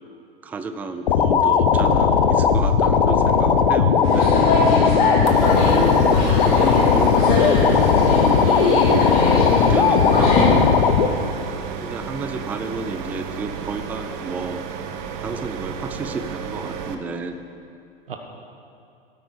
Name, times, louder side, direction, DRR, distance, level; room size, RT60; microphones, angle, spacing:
voice 1, 0.4-4.3 5.4-7.6 8.5-10.7 11.8-14.6 15.2-17.4, right 4 dB, 5° right, 9 dB, 0.4 m, -31 dB
sound 1, 1.1-11.1, left 6 dB, 60° left, 1.0 m, -17 dB
sound 2, 4.0-10.5, left 3 dB, 30° left, 2.7 m, -22 dB
voice 2, 4.3-5.6 18.1-18.2, right 6 dB, 65° right, 3 dB, 1.3 m, -38 dB
sound 3, 5.3-16.9, right 6 dB, 35° right, 1.0 m, -33 dB
17.0 x 9.0 x 5.0 m, 2.5 s
figure-of-eight pair, 100°, 30 cm